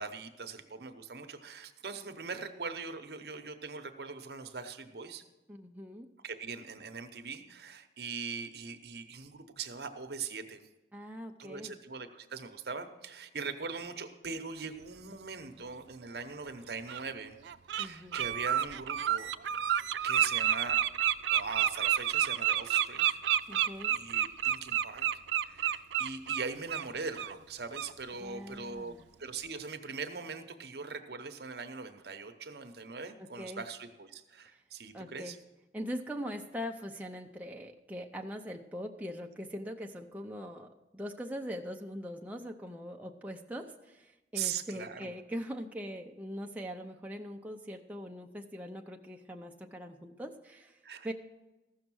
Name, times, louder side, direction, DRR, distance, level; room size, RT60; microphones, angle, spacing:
voice 1, 0.0-5.2 6.2-10.6 11.4-17.3 17.7-19.3 20.0-20.8 21.3-23.2 23.9-25.1 25.4-28.9 29.2-35.4 44.3-45.1 50.8-51.1, right 5 dB, 65° right, 7 dB, 0.8 m, -41 dB
voice 2, 5.5-6.1 10.9-11.8 17.8-18.2 23.5-24.0 28.2-29.0 33.2-33.6 34.9-35.4 35.7-50.8 51.0-51.1, equal, 10° right, 1 dB, 0.5 m, -42 dB
Bird, 16.0-16.1 16.9-17.0 17.5-17.9 18.1-26.9 27.2-27.3 27.7-27.9, right 10 dB, 85° right, 0.4 m, -29 dB
15.0 x 6.5 x 6.2 m, 1.0 s
head